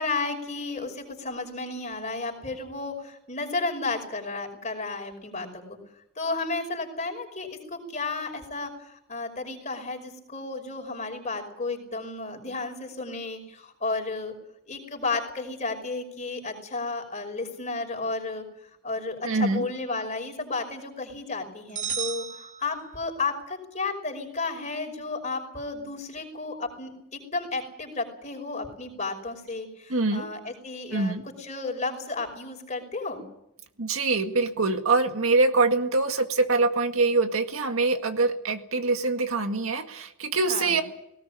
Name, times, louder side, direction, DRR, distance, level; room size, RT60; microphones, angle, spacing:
voice 1, 0.0-5.8 6.2-14.3 14.7-18.4 18.8-33.2 40.5-40.8, left 3 dB, 35° left, 2 dB, 5.4 m, -33 dB
voice 2, 19.2-19.6 29.9-30.3 30.9-31.2 33.8-40.8, right 3 dB, 75° right, 6 dB, 1.9 m, -24 dB
sound 1, 21.7-23.3, right 8 dB, 40° right, 2.7 m, -34 dB
19.0 x 18.5 x 8.8 m, 0.79 s
head